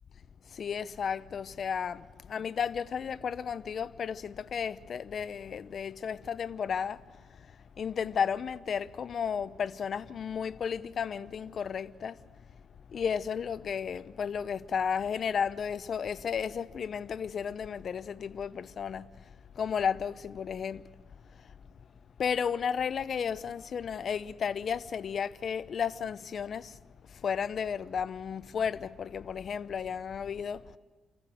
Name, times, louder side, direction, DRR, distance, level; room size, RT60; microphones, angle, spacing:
voice 1, 0.5-12.4 12.9-20.8 21.3-21.5 22.2-26.8 27.1-30.8, left 7 dB, 55° left, 0.8 m, -33 dB
29.0 x 14.5 x 7.9 m
cardioid pair, 90°, 0 cm